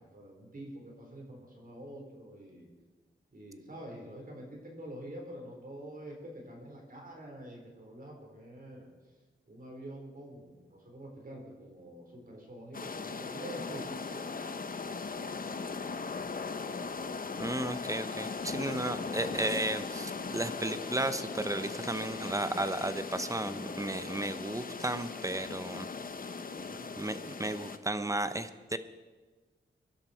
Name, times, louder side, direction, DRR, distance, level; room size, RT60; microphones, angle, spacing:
voice 1, 0.0-2.7 3.3-8.9 9.5-14.4 26.5-26.9, right 1 dB, 45° right, 0 dB, 4.3 m, -46 dB
sound 1, 12.7-27.8, left 4 dB, 45° left, 0.9 m, -39 dB
voice 2, 17.4-25.9 27.0-28.8, right 1 dB, 15° right, 11 dB, 0.9 m, -34 dB
23.0 x 11.5 x 4.5 m, 1.3 s
wide cardioid pair, 75°, 20 cm